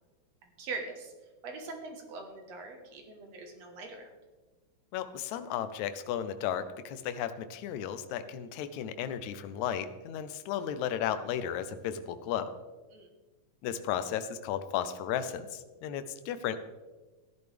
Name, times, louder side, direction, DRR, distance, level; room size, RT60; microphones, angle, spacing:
voice 1, 0.4-1.1 1.4-4.1 12.9-13.1, right 3 dB, 65° right, 3 dB, 2.4 m, -42 dB
voice 2, 4.9-12.5 13.6-16.6, left 9 dB, 80° left, 10 dB, 2.0 m, -34 dB
14.0 x 11.0 x 3.4 m, 1.2 s
omnidirectional pair, 3.3 m